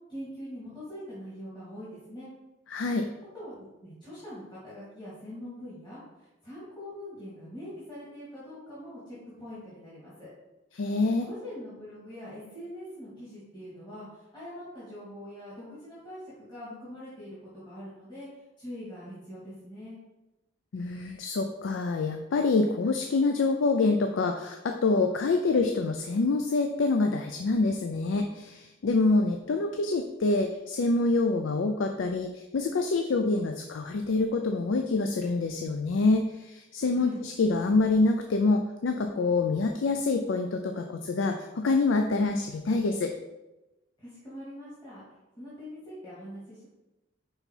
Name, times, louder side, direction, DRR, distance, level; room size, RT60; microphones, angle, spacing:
voice 1, 0.1-2.3 3.3-6.0 6.4-10.3 11.0-17.4 17.7-18.3 18.6-20.0 36.9-37.2 44.0-45.0 45.4-46.7, equal, 25° left, -10 dB, 2.0 m, -43 dB
voice 2, 2.7-3.0 10.7-11.3 20.7-43.1, left 3 dB, 80° left, 5 dB, 0.4 m, -26 dB
5.6 x 4.0 x 4.5 m, 1.0 s
head